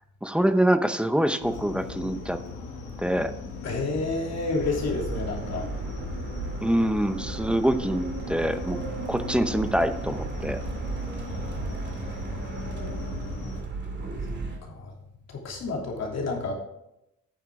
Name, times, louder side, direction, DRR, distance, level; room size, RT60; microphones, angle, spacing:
voice 1, 0.2-2.4 3.0-3.3 6.6-8.8 9.1-10.6, right 1 dB, 5° right, 10 dB, 0.7 m, -25 dB
sound 1, 1.4-13.6, left 4 dB, 80° left, 2.4 m, -39 dB
voice 2, 3.6-5.7 11.3-12.3 14.6-14.9 15.3-16.5, left 3 dB, 60° left, 0 dB, 3.0 m, -30 dB
sound 2, 4.6-14.6, right 3 dB, 35° right, 2.4 m, -35 dB
9.7 x 7.4 x 3.6 m, 0.84 s
cardioid pair, 90°, 30 cm